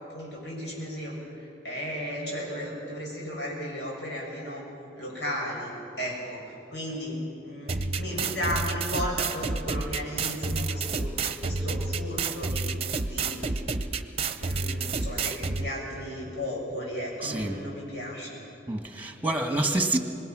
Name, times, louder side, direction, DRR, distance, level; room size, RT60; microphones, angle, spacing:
voice 1, 0.1-4.7 5.0-11.1 11.4-12.8 13.1-13.7 14.0-14.1 14.4-18.4, equal, 85° left, -3 dB, 7.8 m, -35 dB
sound 1, 7.7-15.7, right 3 dB, 35° right, 0.8 m, -30 dB
voice 2, 17.2-17.6 18.7-20.0, right 2 dB, 10° right, 5 dB, 1.6 m, -27 dB
26.0 x 21.5 x 6.1 m, 2.8 s
head